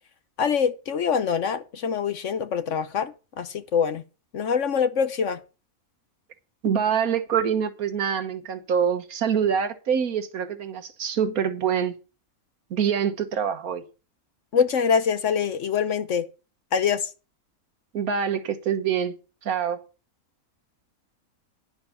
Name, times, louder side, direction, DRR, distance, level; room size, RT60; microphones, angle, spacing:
voice 1, 0.4-4.0 4.3-5.4 14.5-16.2 16.7-17.1, left 7 dB, 60° left, 1.2 m, -24 dB
voice 2, 6.6-11.9 12.7-13.8 17.9-19.1 19.4-19.8, right 7 dB, 80° right, 1.7 m, -25 dB
10.5 x 6.1 x 7.0 m
omnidirectional pair, 1.5 m